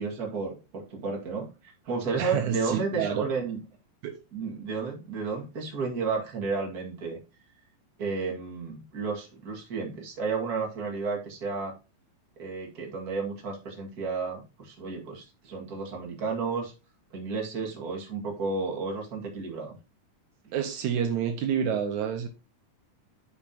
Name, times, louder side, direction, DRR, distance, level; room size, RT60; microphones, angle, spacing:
voice 1, 0.0-3.6 4.3-7.2 8.0-11.7 12.4-16.7 17.1-19.7, right 4 dB, 35° right, 2.3 m, -32 dB
voice 2, 2.2-3.3 4.0-4.2 20.5-22.3, right 8 dB, 75° right, 2.3 m, -28 dB
12.0 x 5.0 x 2.9 m
omnidirectional pair, 3.5 m